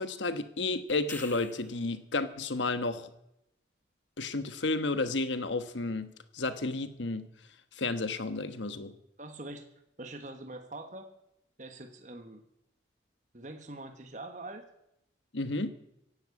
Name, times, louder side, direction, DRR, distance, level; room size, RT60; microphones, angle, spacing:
voice 1, 0.0-3.1 4.2-7.3 7.8-8.9 15.3-15.7, left 3 dB, 80° left, 10 dB, 1.3 m, -32 dB
sound 1, 0.9-1.9 6.5-6.6, left 2 dB, 10° left, 1.1 m, -45 dB
voice 2, 9.2-9.6 10.0-11.0 11.6-12.4 13.3-14.6, right 2 dB, 40° right, 6 dB, 1.5 m, -43 dB
16.0 x 10.5 x 8.4 m, 0.82 s
head